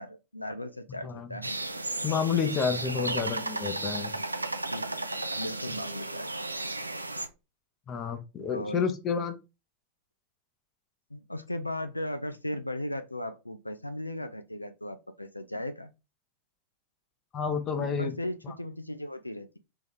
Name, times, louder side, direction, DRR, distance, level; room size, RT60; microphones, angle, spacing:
voice 1, 0.0-1.6 2.9-3.4 4.7-5.0 5.4-6.7 8.5-8.8 11.1-15.9 17.7-19.6, left 1 dB, 85° left, 0.3 m, -37 dB
voice 2, 1.0-1.3 2.0-4.1 7.9-9.4 17.3-18.2 18.4-18.5, left 6 dB, 30° left, 0.7 m, -30 dB
sound 1, 1.4-7.3, right 2 dB, 85° right, 0.4 m, -34 dB
3.6 x 3.0 x 3.5 m
figure-of-eight pair, 90°, 0 cm